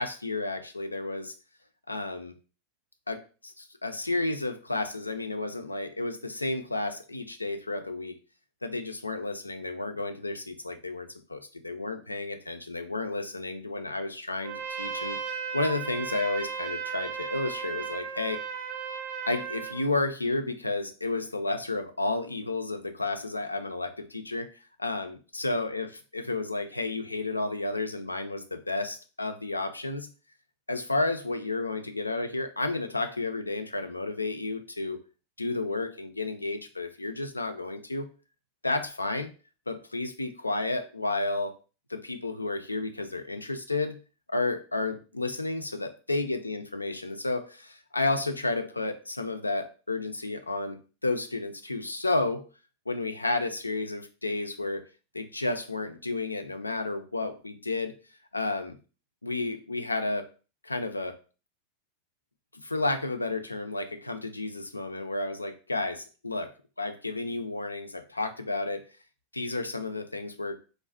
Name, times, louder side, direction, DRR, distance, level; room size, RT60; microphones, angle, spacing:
voice 1, 0.0-1.3 1.9-2.3 3.1-8.2 8.6-18.4 19.3-24.5 24.8-30.1 30.7-35.0 35.4-38.1 38.6-39.3 39.7-41.5 41.9-44.0 44.3-50.8 51.0-52.5 52.9-54.8 55.1-57.9 58.3-58.8 59.2-60.3 60.6-61.2 62.5-66.5 66.8-68.8 69.3-70.6, left 2 dB, 80° left, 8 dB, 0.3 m, -31 dB
Trumpet, 14.4-19.8, right 6 dB, 60° right, 0.5 m, -35 dB
2.4 x 2.0 x 3.4 m, 0.35 s
figure-of-eight pair, 90°, 0 cm